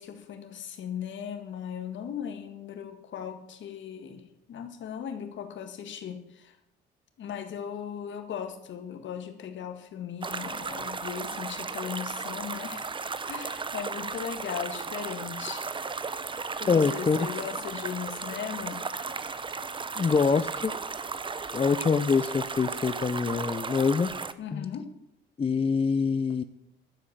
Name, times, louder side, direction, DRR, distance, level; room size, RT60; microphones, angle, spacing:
voice 1, 0.0-4.2 4.5-6.6 7.2-12.9 13.3-15.6 16.6-18.8 24.4-24.9, left 8 dB, 70° left, 7 dB, 1.9 m, -37 dB
sound 1, 10.2-24.3, right 4 dB, 25° right, 0.8 m, -35 dB
voice 2, 16.7-17.2 20.0-20.7 21.5-24.1 24.5-24.7 25.4-26.4, left 5 dB, 30° left, 12 dB, 0.6 m, -25 dB
12.0 x 7.6 x 7.3 m, 0.86 s
cardioid pair, 90°, 20 cm